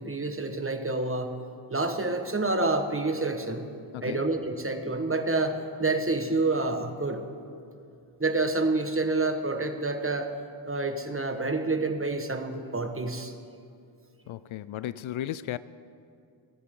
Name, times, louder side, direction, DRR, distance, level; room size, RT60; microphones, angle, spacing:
voice 1, 0.0-1.4 1.7-3.7 4.0-7.2 8.2-10.3 10.7-13.3, right 2 dB, 25° right, 7 dB, 1.5 m, -28 dB
voice 2, 14.3-15.6, left 12 dB, 75° left, 17 dB, 0.5 m, -35 dB
29.0 x 10.5 x 3.8 m, 2.5 s
cardioid pair, 40°, 49 cm